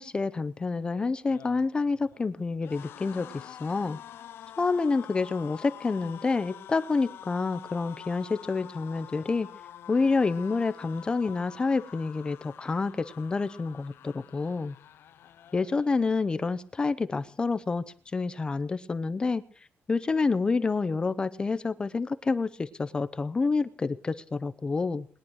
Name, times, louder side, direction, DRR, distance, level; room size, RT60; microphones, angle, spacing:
voice 1, 0.0-4.0 4.6-9.5 9.9-14.8 15.5-17.8 18.1-19.4 19.9-25.1, left 4 dB, 20° left, 12 dB, 0.8 m, -28 dB
sound 1, 1.2-16.4 16.7-16.9 17.2-18.0, left 11 dB, 65° left, 0.8 m, -47 dB
21.0 x 10.5 x 6.3 m, 0.44 s
cardioid pair, 155°, 4 cm